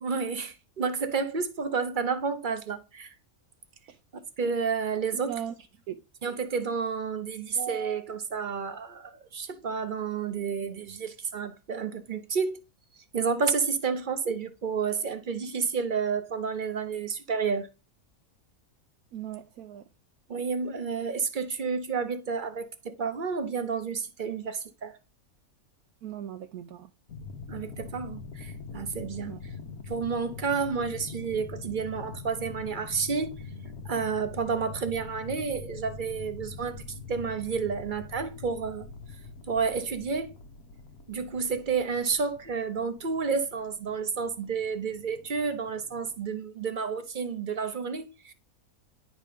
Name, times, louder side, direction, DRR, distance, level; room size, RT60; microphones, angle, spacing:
voice 1, 0.0-3.1 4.4-5.3 6.2-12.6 13.1-17.7 20.3-25.0 27.5-29.3 29.9-33.3 33.8-38.9 39.5-40.3 41.1-48.3, right 5 dB, 40° right, 0.8 m, -30 dB
voice 2, 5.1-5.5 5.9-6.0 6.2-6.3 19.1-19.9 26.0-26.9 29.3-29.4, right 10 dB, 80° right, 1.2 m, -38 dB
sound 1, 27.1-46.2, left 4 dB, 80° left, 1.5 m, -43 dB
10.5 x 3.7 x 5.0 m
omnidirectional pair, 1.5 m